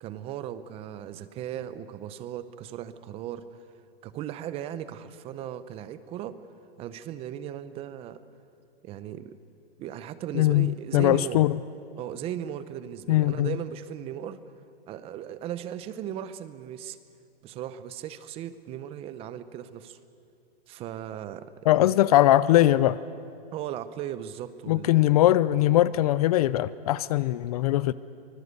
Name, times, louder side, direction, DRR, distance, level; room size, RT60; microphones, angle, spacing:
voice 1, 0.0-3.5 4.0-6.4 6.8-8.2 8.8-9.4 9.8-11.4 12.0-14.4 14.9-17.0 17.4-20.0 20.7-22.0 23.5-24.9, right 10 dB, 20° right, 14 dB, 0.6 m, -37 dB
voice 2, 10.3-11.6 13.1-13.5 21.7-23.0 24.7-27.9, left 14 dB, 40° left, 18 dB, 0.5 m, -21 dB
24.5 x 21.0 x 8.1 m, 2.4 s
hypercardioid pair, 150°, 31 cm